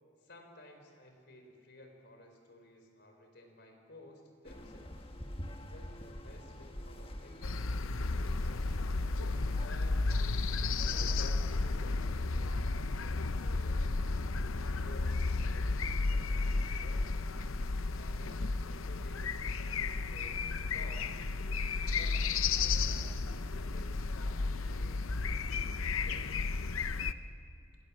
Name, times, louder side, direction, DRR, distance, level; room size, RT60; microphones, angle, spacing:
voice 1, 0.2-5.1 5.7-7.9 9.6-13.9 14.8-17.3 17.9-21.2 21.9-23.2 23.5-25.1 25.4-26.4, left 1 dB, 55° left, 4 dB, 4.3 m, -55 dB
sound 1, 4.4-9.7, equal, 25° left, 1.5 m, -46 dB
sound 2, 7.4-27.1, left 3 dB, 85° left, 0.8 m, -33 dB
27.5 x 26.5 x 7.3 m, 2.5 s
head